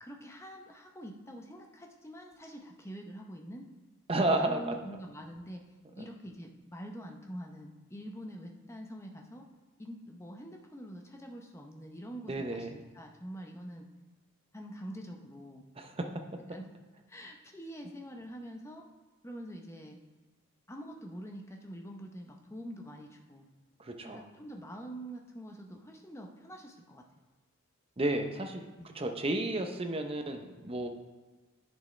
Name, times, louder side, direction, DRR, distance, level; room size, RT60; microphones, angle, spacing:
voice 1, 0.0-3.7 4.4-5.7 5.9-9.5 9.8-13.9 14.5-15.6 16.5-16.6 17.1-18.9 19.2-20.0 20.7-23.4 24.0-27.3 28.8-29.0, equal, 15° left, 2 dB, 0.7 m, -45 dB
voice 2, 4.1-4.7 6.0-6.1 12.3-12.7 15.8-16.1 23.8-24.2 28.0-28.7 28.9-30.9, right 2 dB, 25° right, 5 dB, 0.6 m, -32 dB
10.5 x 6.2 x 3.2 m, 1.2 s
head